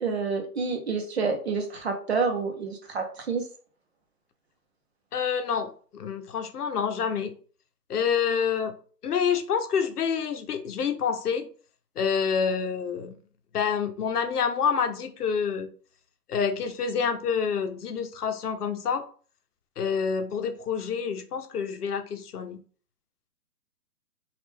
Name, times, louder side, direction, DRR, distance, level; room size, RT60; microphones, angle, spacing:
voice 1, 0.0-3.5, right 4 dB, 40° right, 4 dB, 0.7 m, -28 dB
voice 2, 5.1-7.3 7.9-8.7 9.0-11.5 12.0-13.1 13.5-15.7 16.3-19.0 19.8-22.6, left 6 dB, 70° left, 7 dB, 0.7 m, -27 dB
3.1 x 2.4 x 3.4 m, 0.42 s
hypercardioid pair, 160°, 48 cm